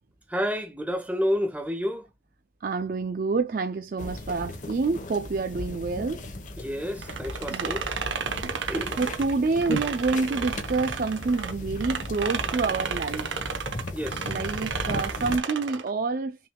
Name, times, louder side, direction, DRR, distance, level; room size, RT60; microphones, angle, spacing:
voice 1, 0.3-2.1 6.6-7.9 8.7-9.0 13.9-14.3, equal, 10° right, 0.9 m, -29 dB
voice 2, 2.6-6.2 7.5-7.7 8.4-8.7 9.0-13.4 14.3-16.5, right 4 dB, 45° right, 0.4 m, -28 dB
sound 1, 4.0-15.4, left 1 dB, 40° left, 1.0 m, -36 dB
sound 2, 7.0-11.5 11.8-15.9, right 6 dB, 80° right, 0.9 m, -32 dB
5.9 x 3.4 x 2.2 m
head